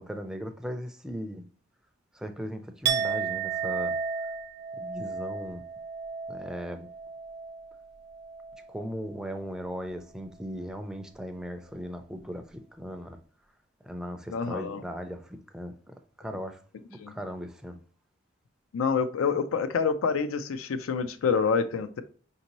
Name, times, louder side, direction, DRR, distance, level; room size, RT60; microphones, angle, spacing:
voice 1, 0.0-1.4 2.1-4.0 4.7-5.6 6.3-6.9 8.7-13.2 13.8-16.6 16.9-17.8, equal, 5° right, 0.4 m, -38 dB
Chink clink, 2.8-8.8 9.1-9.5, right 6 dB, 55° right, 0.5 m, -33 dB
voice 2, 14.3-14.8 17.0-17.2 18.7-22.0, left 5 dB, 85° left, 0.4 m, -27 dB
5.1 x 2.7 x 2.9 m
head